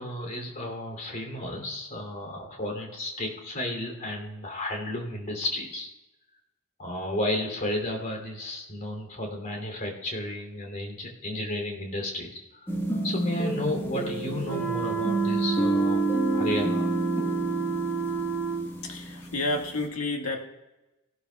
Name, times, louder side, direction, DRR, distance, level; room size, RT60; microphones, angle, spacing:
voice 1, 0.0-5.9 6.8-12.7 13.0-16.0 16.3-16.8, left 1 dB, 40° left, 1 dB, 2.9 m, -33 dB
sound 1, 12.7-19.8, right 2 dB, 10° left, 1.3 m, -29 dB
sound 2, 14.4-18.7, right 6 dB, 60° left, 1.0 m, -30 dB
voice 2, 18.8-20.4, left 2 dB, 90° left, 2 dB, 1.7 m, -30 dB
17.5 x 12.0 x 2.3 m, 1.0 s
head